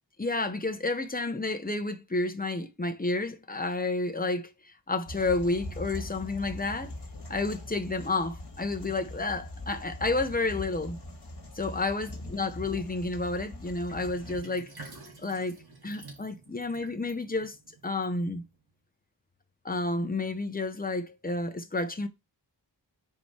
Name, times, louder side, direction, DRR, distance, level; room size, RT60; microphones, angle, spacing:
voice 1, 0.2-4.5 4.9-6.9 7.3-11.0 11.5-14.7 15.2-17.5 17.8-18.4 19.6-22.1, left 2 dB, 20° left, 1.0 m, -30 dB
sound 1, 5.1-14.4, left 1 dB, 60° left, 2.0 m, -42 dB
Sink (filling or washing), 13.9-18.6, right 3 dB, 55° right, 2.6 m, -49 dB
5.2 x 4.5 x 4.5 m
wide cardioid pair, 90°, 44 cm